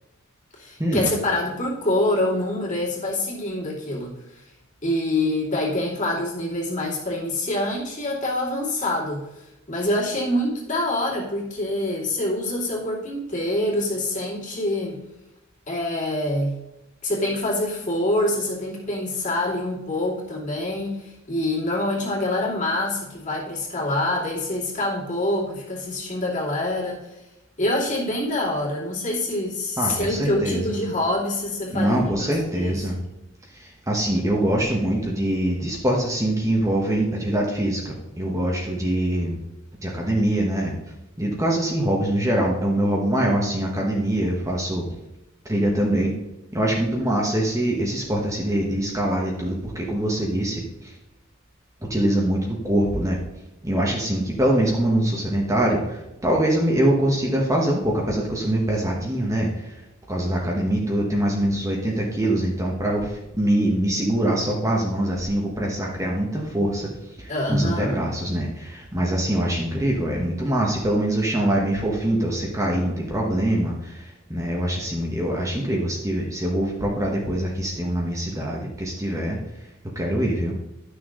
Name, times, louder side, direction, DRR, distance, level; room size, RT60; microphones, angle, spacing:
voice 1, 0.5-4.4 4.8-15.0 15.7-16.6 17.0-27.2 27.6-32.3 32.6-32.8 67.3-68.1, left 1 dB, 35° left, -5 dB, 2.7 m, -26 dB
voice 2, 29.8-30.8 31.7-33.0 33.5-39.4 39.8-40.7 41.2-44.9 45.4-46.1 46.5-50.9 51.8-53.2 53.6-59.8 60.1-79.4 79.9-80.6, right 1 dB, 15° right, -2 dB, 1.2 m, -24 dB
11.5 x 6.3 x 3.8 m, 0.93 s
head